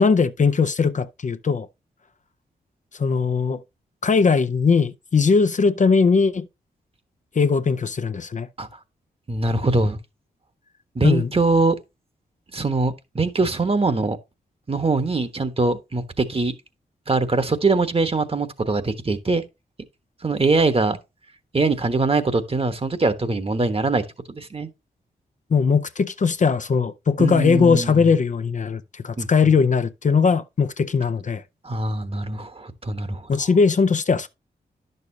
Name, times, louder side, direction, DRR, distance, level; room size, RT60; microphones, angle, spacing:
voice 1, 0.0-1.7 3.0-3.6 4.0-6.5 7.4-8.5 11.0-11.3 25.5-31.4 33.3-34.3, left 5 dB, 45° left, 0.6 m, -19 dB
voice 2, 9.3-10.0 10.9-11.8 12.5-14.2 14.7-16.5 17.1-19.4 20.2-21.0 21.5-24.7 27.2-28.1 29.2-29.3 31.6-33.2, right 3 dB, 35° right, 1.2 m, -22 dB
10.5 x 6.7 x 2.8 m
cardioid pair, 60°, 17 cm